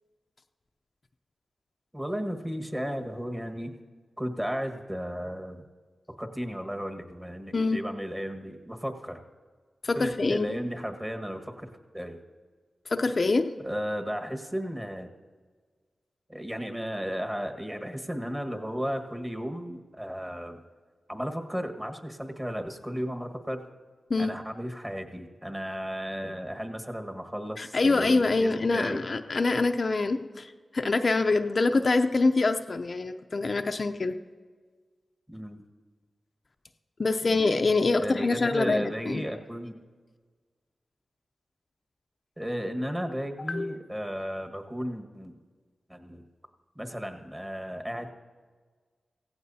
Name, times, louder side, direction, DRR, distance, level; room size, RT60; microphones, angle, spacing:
voice 1, 1.9-3.7 4.2-5.6 6.2-9.2 9.9-12.2 13.6-15.1 16.3-20.6 21.1-23.6 24.2-29.0 35.3-35.6 37.2-37.4 38.0-39.7 42.4-45.3 45.9-46.2 46.7-48.1, equal, 15° right, 4 dB, 1.6 m, -34 dB
voice 2, 9.8-10.6 12.9-13.5 24.1-24.3 27.6-34.2 37.0-39.2 43.5-43.7, left 3 dB, 55° left, 6 dB, 0.6 m, -25 dB
16.5 x 15.5 x 2.8 m, 1.5 s
cardioid pair, 50°, 0 cm